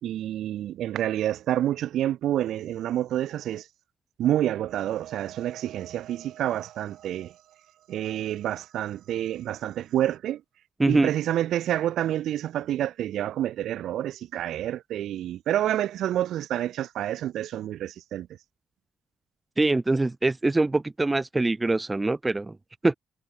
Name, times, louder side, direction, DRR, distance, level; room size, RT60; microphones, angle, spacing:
voice 1, 0.0-3.7 4.2-7.3 7.9-10.4 10.9-18.3, right 12 dB, 75° right, 3.5 m, -28 dB
voice 2, 10.8-11.1 19.6-22.5 22.8-22.9, right 2 dB, 20° right, 0.8 m, -23 dB
cardioid pair, 90°, 0 cm